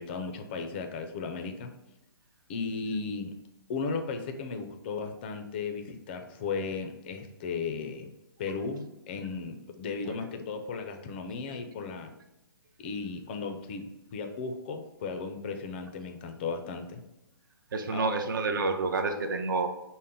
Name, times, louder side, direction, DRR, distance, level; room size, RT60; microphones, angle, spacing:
voice 1, 0.0-1.7 2.5-3.3 3.7-8.1 8.4-12.1 12.8-17.0 17.9-18.2, left 4 dB, 25° left, 6 dB, 0.4 m, -35 dB
voice 2, 17.7-19.7, right 3 dB, 55° right, 6 dB, 0.6 m, -29 dB
5.4 x 2.1 x 3.7 m, 0.93 s
hypercardioid pair, 155°, 13 cm